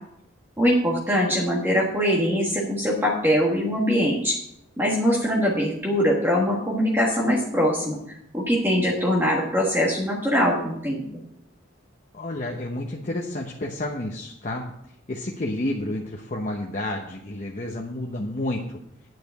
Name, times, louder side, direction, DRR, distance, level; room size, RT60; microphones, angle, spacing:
voice 1, 0.6-4.3 4.8-11.0, equal, 10° right, -3 dB, 1.5 m, -22 dB
voice 2, 12.1-14.7 15.1-18.8, left 1 dB, 40° left, 0 dB, 0.9 m, -30 dB
9.4 x 5.1 x 7.9 m, 0.76 s
head